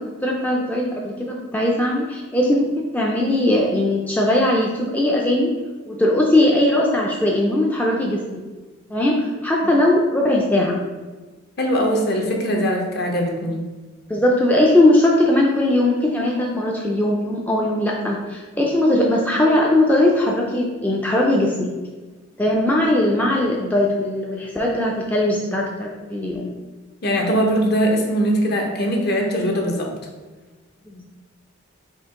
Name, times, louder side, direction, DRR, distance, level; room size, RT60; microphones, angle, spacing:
voice 1, 0.0-2.6 2.9-5.5 5.9-8.4 8.9-10.8 14.1-21.7 22.4-26.5 30.9-31.0, left 1 dB, 10° left, -2 dB, 0.3 m, -19 dB
voice 2, 11.6-13.6 27.0-29.9, equal, 50° left, 1 dB, 0.7 m, -21 dB
4.4 x 2.9 x 3.6 m, 1.3 s
head